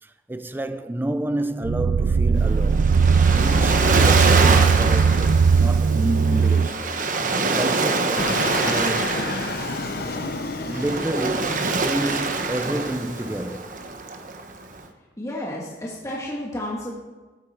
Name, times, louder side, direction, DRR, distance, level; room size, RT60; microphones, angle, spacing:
voice 1, 0.0-2.9 3.4-9.2 10.6-13.8, right 1 dB, 10° right, 0.4 m, -30 dB
sound 1, 1.6-6.7, right 5 dB, 85° right, 0.4 m, -18 dB
Waves surf, 2.4-14.8, right 3 dB, 45° right, 1.3 m, -25 dB
Fixed-wing aircraft airplane, 8.2-13.6, left 3 dB, 55° left, 0.8 m, -31 dB
voice 2, 15.2-16.9, left 1 dB, 15° left, 2.3 m, -31 dB
16.0 x 13.0 x 4.7 m
head